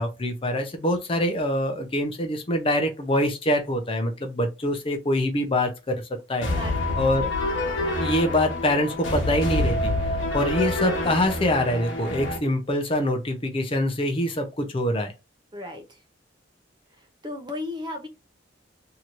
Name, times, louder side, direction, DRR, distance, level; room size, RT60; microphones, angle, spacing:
voice 1, 0.0-6.0 6.3-6.5 7.0-7.3 8.0-15.1, left 1 dB, 30° left, 0.6 m, -25 dB
sound 1, 6.4-12.4, left 1 dB, 85° left, 1.0 m, -27 dB
voice 2, 6.5-7.3 15.5-15.8 17.2-18.1, left 2 dB, 25° right, 0.6 m, -35 dB
3.0 x 2.8 x 2.4 m
head